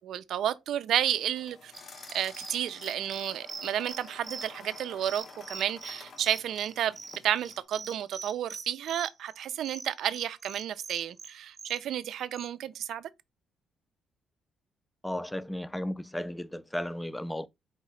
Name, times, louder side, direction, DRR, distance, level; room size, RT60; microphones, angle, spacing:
voice 1, 0.0-1.7 2.1-7.0 7.2-13.1, right 10 dB, 75° right, 0.4 m, -31 dB
sound 1, 1.0-7.6, left 4 dB, 55° left, 0.8 m, -50 dB
sound 2, 1.7-12.5, right 4 dB, 30° right, 0.9 m, -44 dB
voice 2, 15.0-17.5, left 1 dB, 10° left, 0.4 m, -34 dB
4.5 x 2.8 x 3.1 m
cardioid pair, 90°, 0 cm